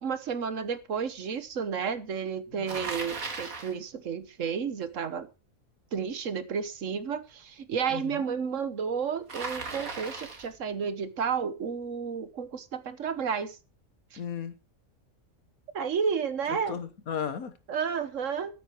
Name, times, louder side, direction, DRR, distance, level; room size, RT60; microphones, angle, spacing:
voice 1, 0.0-5.3 5.9-13.6 14.1-14.2 15.7-16.8 17.7-18.5, right 6 dB, 65° right, 12 dB, 1.4 m, -31 dB
voice 2, 2.5-2.9 7.9-8.2 14.2-14.5 16.7-17.5, left 7 dB, 85° left, 11 dB, 1.7 m, -35 dB
Bicycle, 2.7-3.8 9.3-10.6, right 3 dB, 80° right, 2.5 m, -37 dB
13.0 x 9.1 x 4.5 m, 0.32 s
omnidirectional pair, 1.4 m